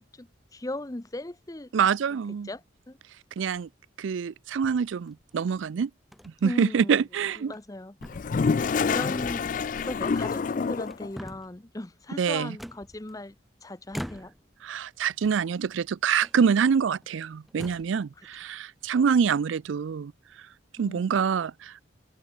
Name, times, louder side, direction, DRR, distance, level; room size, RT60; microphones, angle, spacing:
voice 1, 0.0-1.7 2.5-2.6 2.9-3.0 6.4-6.9 7.4-8.0 8.3-8.4 8.8-9.5 9.8-13.4 13.6-14.3 18.2-18.3 20.8-21.2, left 1 dB, 20° left, 0.7 m, -37 dB
voice 2, 1.7-2.5 3.4-3.7 4.0-5.9 6.2-7.5 12.2-12.6 14.6-20.1 20.4-20.5 20.8-21.7, right 6 dB, 85° right, 0.4 m, -26 dB
sound 1, 3.5-3.8 4.6-5.4 6.1-6.4 6.8-6.9 7.4-7.8 8.0-8.7 9.8-10.5 10.8-11.6 12.6-13.4 13.9-14.6 15.1-15.8 16.2-16.4 17.0-17.1 17.5-18.0, equal, ahead, 3.8 m, -43 dB
Toilet flush, 8.0-11.1, left 5 dB, 45° left, 0.3 m, -27 dB
head